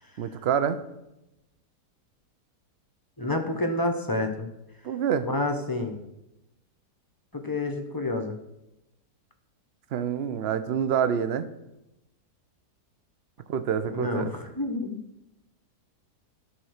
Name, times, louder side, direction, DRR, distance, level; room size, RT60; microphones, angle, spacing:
voice 1, 0.2-0.8 4.8-5.3 9.9-11.5 13.5-14.3, right 8 dB, 60° right, 11 dB, 0.7 m, -27 dB
voice 2, 3.2-4.5 5.2-6.0 7.3-8.4 13.9-15.0, left 2 dB, 20° left, 4 dB, 0.6 m, -29 dB
12.5 x 4.3 x 6.4 m, 0.90 s
omnidirectional pair, 1.8 m